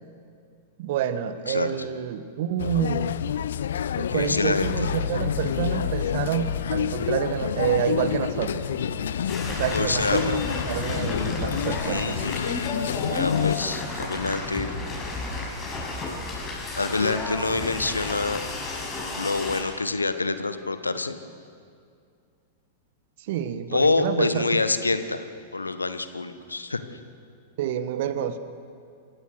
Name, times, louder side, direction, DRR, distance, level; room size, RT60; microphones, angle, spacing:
voice 1, 0.8-3.2 3.9-8.6 9.5-12.2 23.2-24.4 27.6-28.4, right 9 dB, 50° right, 12 dB, 1.3 m, -28 dB
sound 1, 2.6-13.6, left 9 dB, 65° left, 0.5 m, -28 dB
voice 2, 4.1-4.9 9.7-10.3 11.8-12.4 13.1-14.7 16.7-18.4 19.1-21.2 23.7-25.2 25.5-26.8, left 3 dB, 80° left, 11 dB, 1.2 m, -26 dB
sound 2, 4.6-14.0, right 1 dB, 35° right, 2.8 m, -40 dB
sound 3, 9.3-19.6, left 3 dB, 20° left, 6.3 m, -32 dB
27.5 x 16.0 x 6.5 m, 2.3 s
figure-of-eight pair, 95°, 0 cm